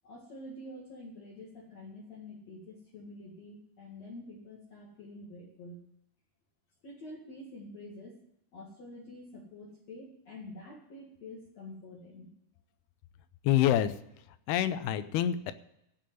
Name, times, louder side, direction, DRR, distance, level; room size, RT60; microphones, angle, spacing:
voice 1, 0.0-5.8 6.8-8.2 8.5-12.3, left 1 dB, 50° left, -5 dB, 3.0 m, -47 dB
voice 2, 13.4-13.9 14.5-15.5, left 11 dB, 80° left, 12 dB, 2.6 m, -26 dB
15.5 x 5.5 x 9.2 m, 0.81 s
omnidirectional pair, 4.6 m